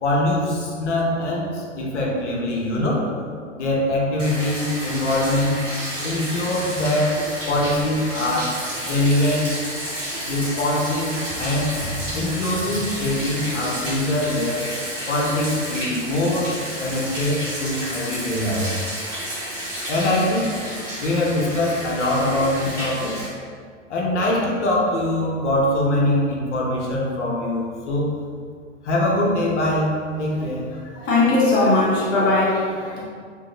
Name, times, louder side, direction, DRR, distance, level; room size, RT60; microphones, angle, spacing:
voice 1, 0.0-3.1 3.6-5.6 6.0-8.6 8.9-9.6 10.3-11.7 12.1-14.7 15.1-18.7 19.9-20.5 21.0-23.3 23.9-28.1 28.8-30.7, left 1 dB, 70° left, -3 dB, 0.8 m, -23 dB
Bathtub (filling or washing), 4.2-23.3, equal, 90° right, 1.1 m, -31 dB
voice 2, 31.0-33.1, left 2 dB, 25° left, -5 dB, 0.5 m, -19 dB
3.7 x 2.6 x 2.4 m, 2.1 s
figure-of-eight pair, 100°, 37 cm